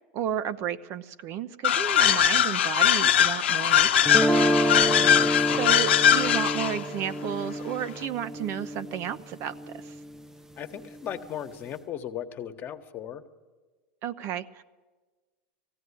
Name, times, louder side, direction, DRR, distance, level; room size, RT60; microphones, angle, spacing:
voice 1, 0.1-4.3 5.6-9.9 14.0-14.6, right 9 dB, 50° right, 12 dB, 0.7 m, -32 dB
sound 1, 1.6-6.8, left 10 dB, 90° left, 0.9 m, -21 dB
sound 2, 4.1-10.2, equal, 10° right, 0.6 m, -28 dB
voice 2, 4.8-5.7 10.6-13.2, left 9 dB, 35° left, 7 dB, 1.3 m, -37 dB
18.5 x 15.5 x 9.9 m, 1.3 s
supercardioid pair, 115°, 6 cm